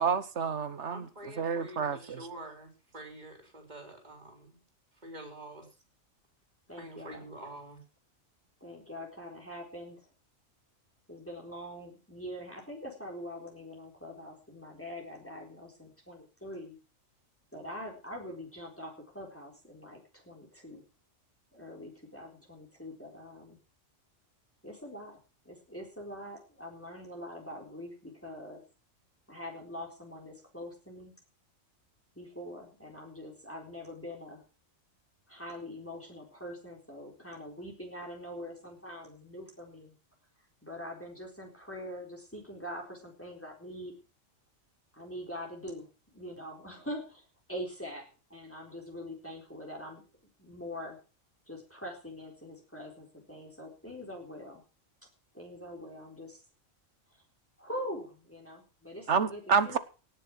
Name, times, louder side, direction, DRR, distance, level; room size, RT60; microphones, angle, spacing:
voice 1, 0.0-1.1 1.4-2.2 59.1-59.8, right 6 dB, 60° right, 1.4 m, -28 dB
voice 2, 0.9-4.6 4.9-5.7 6.8-7.8, right 1 dB, 30° right, 4.3 m, -47 dB
voice 3, 6.7-7.3 8.6-10.0 11.1-16.8 17.5-20.8 21.5-23.6 24.6-25.2 25.5-28.6 29.3-31.1 32.2-34.4 35.3-39.9 40.6-43.9 44.9-47.2 47.5-50.0 50.4-51.0 51.5-54.6 55.3-56.4 57.6-59.8, equal, 10° left, 4.0 m, -43 dB
18.0 x 7.2 x 6.0 m
omnidirectional pair, 1.4 m